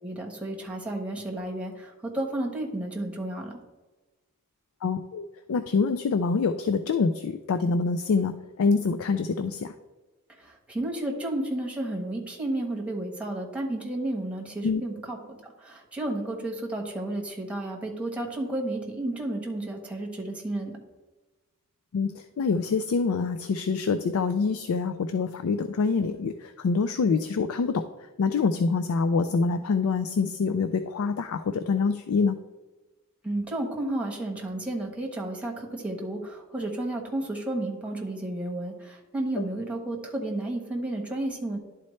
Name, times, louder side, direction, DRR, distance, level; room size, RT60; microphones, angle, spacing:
voice 1, 0.0-3.6 10.4-20.8 33.2-41.6, right 1 dB, 5° right, -1 dB, 1.2 m, -32 dB
voice 2, 4.8-8.3 8.6-9.7 14.6-14.8 21.9-27.8 28.2-32.4, left 4 dB, 65° left, 10 dB, 0.4 m, -25 dB
11.0 x 4.2 x 3.2 m, 1.2 s
head